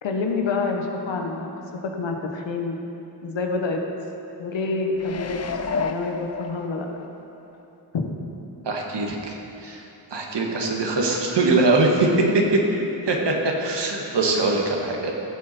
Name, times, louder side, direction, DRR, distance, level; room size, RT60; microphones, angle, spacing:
voice 1, 0.0-2.8 3.2-3.8 4.4-5.4 5.7-6.9 7.9-8.1, left 3 dB, 85° left, 2 dB, 1.2 m, -27 dB
sound 1, 5.0-7.0 7.5-7.6, left 4 dB, 35° left, 0.6 m, -30 dB
voice 2, 8.6-9.4 9.6-9.8 10.1-12.1 13.1-15.1, right 3 dB, 70° right, 0 dB, 1.7 m, -22 dB
15.0 x 7.0 x 4.3 m, 2.9 s
cardioid pair, 55°, 44 cm